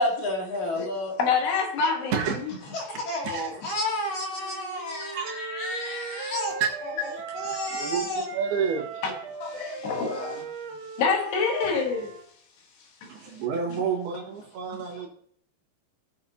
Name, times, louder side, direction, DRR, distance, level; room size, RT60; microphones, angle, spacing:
voice 1, 0.0-1.1 2.7-6.6 7.3-8.3 10.1-10.3, left 1 dB, 50° left, 3.0 m, -30 dB
voice 2, 1.2-2.1 9.0-10.5 11.0-12.1 13.0-13.4, left 5 dB, 75° left, 3.5 m, -27 dB
voice 3, 2.9-3.8 5.1-5.6 6.6-6.7 7.5-8.9 13.1-15.1, right 6 dB, 70° right, 3.4 m, -30 dB
Wind instrument woodwind instrument, 4.3-8.0 8.2-12.2, right 6 dB, 85° right, 3.3 m, -39 dB
17.0 x 6.8 x 2.8 m
omnidirectional pair, 5.0 m